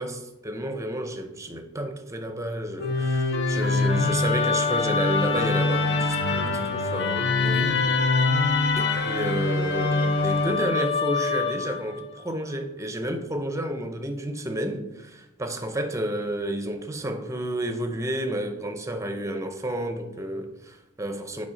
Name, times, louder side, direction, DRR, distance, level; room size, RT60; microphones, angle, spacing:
voice 1, 0.0-7.8 8.2-8.3 8.8-21.5, right 1 dB, 15° right, 0.6 m, -31 dB
Musical instrument, 2.8-12.0, left 3 dB, 55° left, 0.7 m, -24 dB
8.9 x 3.6 x 5.0 m
head